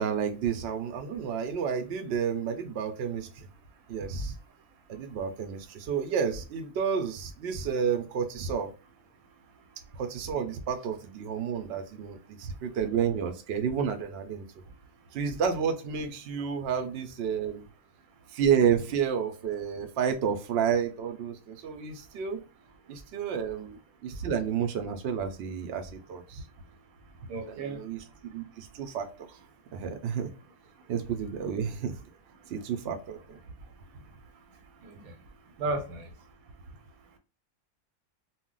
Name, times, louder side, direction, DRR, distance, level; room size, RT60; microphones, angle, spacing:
voice 1, 0.0-3.5 3.9-4.3 4.9-8.7 10.0-14.5 15.1-17.7 18.3-22.4 22.9-26.4 27.5-29.1 29.7-30.3 30.9-31.9 32.5-33.4, right 7 dB, 60° right, 0.7 m, -30 dB
voice 2, 27.3-27.8 34.8-35.1 35.6-36.1, right 2 dB, 90° right, 1.1 m, -33 dB
2.3 x 2.0 x 3.7 m
omnidirectional pair, 1.4 m